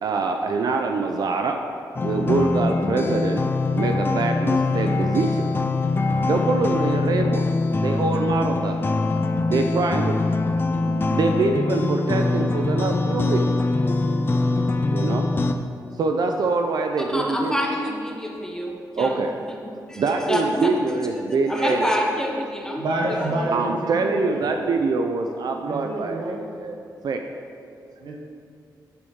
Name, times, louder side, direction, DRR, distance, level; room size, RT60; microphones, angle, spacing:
voice 1, 0.0-1.6 2.0-5.5 6.2-7.5 7.8-8.8 9.5-10.2 10.8-13.5 14.9-15.3 16.0-17.5 19.0-19.3 20.0-21.9 23.5-26.8 27.0-27.2, right 4 dB, 65° right, 4 dB, 0.4 m, -24 dB
sound 1, 1.9-15.5, left 3 dB, 30° left, 0.4 m, -23 dB
voice 2, 17.1-20.7 21.5-22.8 23.2-23.5, equal, 10° left, 0 dB, 0.8 m, -27 dB
voice 3, 22.8-24.5 25.6-26.4 28.0-28.1, right 1 dB, 85° right, -1 dB, 0.9 m, -28 dB
8.5 x 4.6 x 3.6 m, 2.4 s
wide cardioid pair, 110°, 7 cm